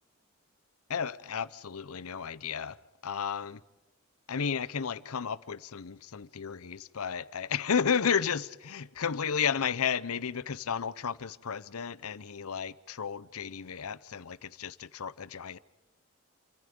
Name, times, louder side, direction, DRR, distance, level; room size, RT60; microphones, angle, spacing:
voice 1, 0.9-2.8 3.0-3.6 4.3-15.6, left 7 dB, 80° left, 0.7 m, -33 dB
29.0 x 24.5 x 5.3 m
head